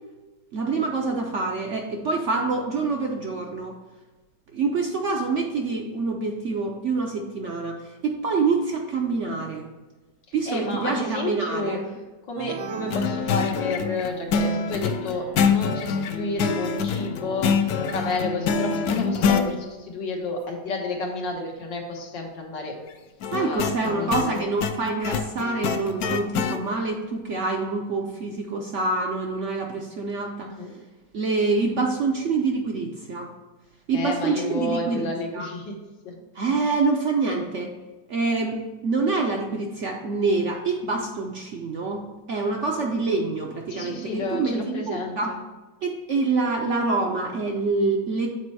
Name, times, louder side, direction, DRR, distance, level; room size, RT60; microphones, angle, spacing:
voice 1, 0.5-3.7 4.5-9.7 10.3-11.8 23.3-30.5 31.1-33.3 33.9-35.1 35.3-35.5 36.3-37.7 38.1-42.0 42.3-45.3 45.8-48.3, right 3 dB, 60° right, 1 dB, 0.8 m, -26 dB
voice 2, 10.5-11.8 12.3-22.8 23.4-24.5 30.4-30.7 33.9-35.7 36.0-36.2 43.7-45.4, left 2 dB, 85° left, 0 dB, 2.0 m, -31 dB
sound 1, 12.4-14.2, right 7 dB, 80° right, 1.2 m, -37 dB
sound 2, 12.9-19.5 23.2-26.6, left 6 dB, 70° left, 0.9 m, -25 dB
7.6 x 4.3 x 4.7 m, 1.2 s
omnidirectional pair, 1.9 m